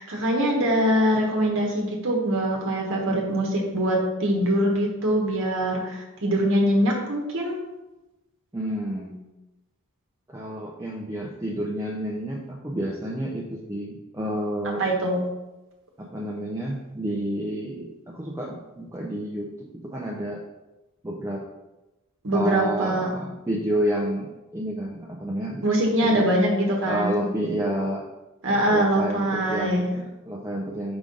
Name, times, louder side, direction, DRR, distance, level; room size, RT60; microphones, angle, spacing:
voice 1, 0.0-7.5 14.8-15.2 22.2-23.1 25.6-27.2 28.4-29.9, right 1 dB, 60° right, -1 dB, 1.1 m, -23 dB
voice 2, 8.5-9.3 10.3-14.8 16.0-20.4 21.0-21.4 22.3-25.6 26.0-26.3 26.8-28.0 28.5-31.0, right 1 dB, 15° right, -2 dB, 0.6 m, -30 dB
5.4 x 4.9 x 3.8 m, 1.0 s
head